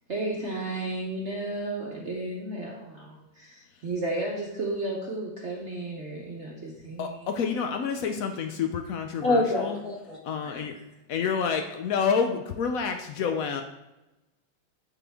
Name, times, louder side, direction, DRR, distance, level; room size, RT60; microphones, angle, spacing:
voice 1, 0.1-7.3 10.4-10.6, right 2 dB, 50° right, -2 dB, 0.9 m, -33 dB
voice 2, 7.0-9.8 10.2-10.7 11.1-13.6, left 6 dB, 90° left, 5 dB, 0.7 m, -28 dB
voice 3, 9.2-10.2, left 2 dB, 50° left, -4 dB, 2.0 m, -25 dB
9.6 x 3.8 x 3.5 m, 0.99 s
omnidirectional pair, 2.1 m